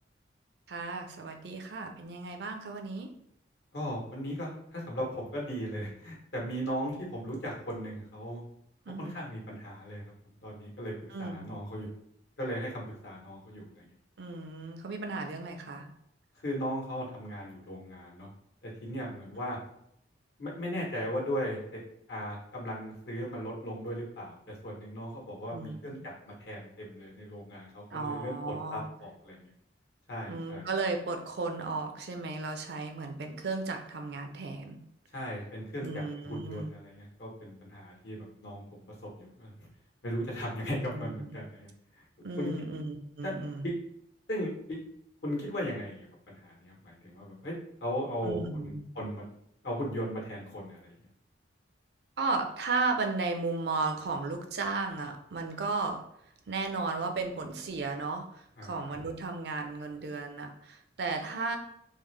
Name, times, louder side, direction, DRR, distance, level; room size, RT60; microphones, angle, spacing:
voice 1, 0.7-3.1 8.9-9.2 11.1-11.5 14.2-15.9 25.5-26.0 27.9-28.9 30.3-34.8 35.8-36.7 40.9-41.4 42.2-43.7 48.2-48.8 52.2-56.0 56.5-61.6, right 3 dB, 65° right, 5 dB, 0.5 m, -34 dB
voice 2, 3.7-8.4 9.0-10.1 10.4-10.9 11.2-11.9 12.4-13.8 16.4-18.3 18.6-19.6 20.4-21.8 22.1-29.5 30.1-30.7 35.1-38.7 39.2-39.5 40.0-41.7 42.4-42.5 43.2-43.3 43.6-43.7 44.3-44.8 45.2-46.1 46.4-47.5 47.8-49.2 49.6-50.9 58.6-58.8, equal, 70° left, -2 dB, 1.1 m, -37 dB
3.6 x 2.1 x 3.2 m, 0.74 s
head